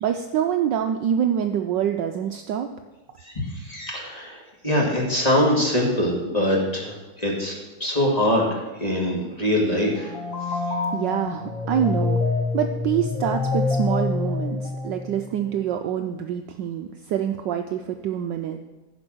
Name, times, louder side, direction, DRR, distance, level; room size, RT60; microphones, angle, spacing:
voice 1, 0.0-2.7 10.9-12.2 12.5-18.6, right 9 dB, 75° right, 6 dB, 1.1 m, -25 dB
voice 2, 3.4-4.4 4.6-6.9 7.2-10.1, left 1 dB, 20° left, -2 dB, 2.0 m, -23 dB
sound 1, 9.9-15.4, left 3 dB, 60° left, 2.1 m, -26 dB
15.0 x 5.2 x 6.2 m, 1.1 s
omnidirectional pair, 2.3 m